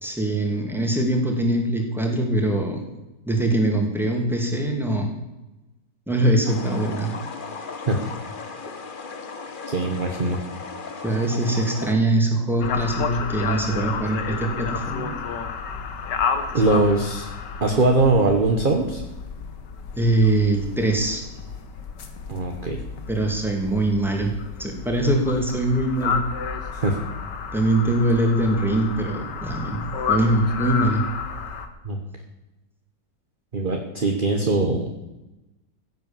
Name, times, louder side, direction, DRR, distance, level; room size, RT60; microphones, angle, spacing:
voice 1, 0.0-2.8 3.3-5.2 6.1-7.1 11.0-15.1 20.0-21.2 23.1-24.3 24.6-26.2 27.5-31.0, right 1 dB, ahead, 2 dB, 2.6 m, -22 dB
sound 1, 6.4-11.9, left 4 dB, 35° left, 1.0 m, -36 dB
voice 2, 9.7-10.4 16.5-17.3 17.6-19.0 22.3-22.8 26.7-27.0 31.8-32.0 33.5-34.9, right 2 dB, 30° right, 3 dB, 1.4 m, -21 dB
sound 2, 12.6-31.7, left 6 dB, 70° left, 1.9 m, -31 dB
16.0 x 8.3 x 7.3 m, 1.0 s
omnidirectional pair, 1.9 m